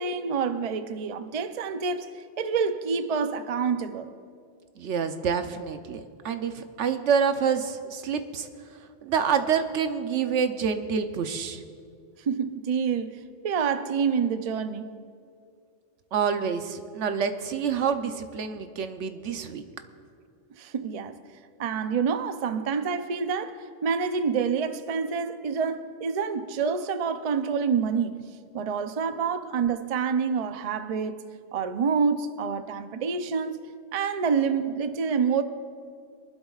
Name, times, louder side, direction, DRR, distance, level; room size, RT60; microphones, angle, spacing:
voice 1, 0.0-4.1 12.3-14.9 20.5-21.2 21.6-28.1 28.5-31.2 31.5-33.6 33.9-35.4, right 6 dB, 45° right, 0.5 m, -27 dB
voice 2, 4.8-8.5 9.0-11.6 16.1-19.6, right 6 dB, 80° right, 1.1 m, -27 dB
24.5 x 12.0 x 2.4 m
omnidirectional pair, 1.2 m